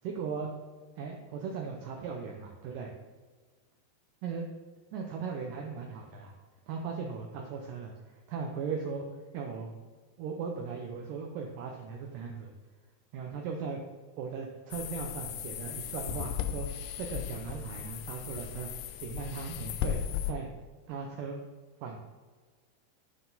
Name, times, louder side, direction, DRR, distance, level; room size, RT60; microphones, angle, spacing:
voice 1, 0.0-0.5 1.0-2.9 4.2-4.5 4.9-6.3 6.7-9.1 9.3-9.7 10.2-12.5 13.1-13.8 14.2-16.7 16.9-20.5 20.9-21.4 21.8-22.0, right 5 dB, 90° right, 1 dB, 1.9 m, -38 dB
sound 1, 14.7-20.3, left 10 dB, 85° left, 2.7 m, -36 dB
11.5 x 3.9 x 3.9 m, 1.4 s
omnidirectional pair, 4.7 m